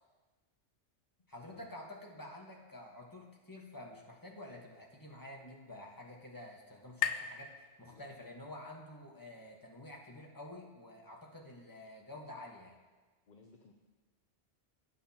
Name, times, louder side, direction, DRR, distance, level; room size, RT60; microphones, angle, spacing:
voice 1, 1.3-7.5 7.8-12.7, left 1 dB, 20° left, -1 dB, 1.3 m, -49 dB
sound 1, 4.7-8.4, left 9 dB, 80° left, 0.9 m, -42 dB
voice 2, 13.3-13.7, left 4 dB, 45° left, 2 dB, 0.8 m, -58 dB
18.0 x 8.6 x 2.9 m, 1.3 s
omnidirectional pair, 1.2 m